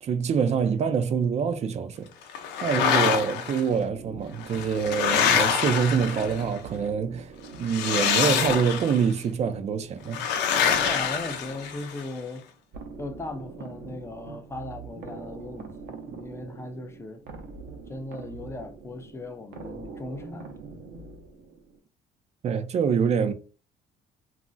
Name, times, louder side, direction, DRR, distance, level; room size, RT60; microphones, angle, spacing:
voice 1, 0.0-2.1 2.6-7.3 7.6-10.2 22.4-23.3, right 6 dB, 40° right, 0.4 m, -25 dB
sound 1, 2.3-3.6 4.4-6.6 7.6-9.1 10.1-12.0, left 8 dB, 90° left, 0.6 m, -25 dB
sound 2, 3.7-21.8, right 4 dB, 75° right, 0.7 m, -44 dB
voice 2, 10.8-12.5 13.0-17.2 17.9-20.5, left 2 dB, 15° left, 0.5 m, -38 dB
2.4 x 2.0 x 3.8 m
cardioid pair, 110°, 17 cm